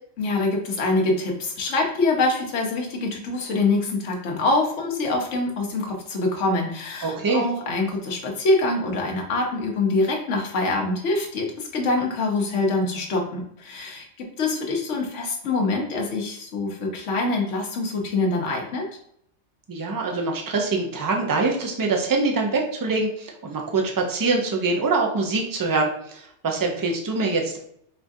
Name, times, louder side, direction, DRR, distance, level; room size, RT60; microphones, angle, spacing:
voice 1, 0.2-18.8, left 2 dB, 85° left, 0 dB, 1.2 m, -25 dB
voice 2, 7.0-7.4 19.7-27.6, right 3 dB, 35° right, 1 dB, 0.3 m, -24 dB
4.8 x 2.4 x 2.6 m, 0.70 s
omnidirectional pair, 1.2 m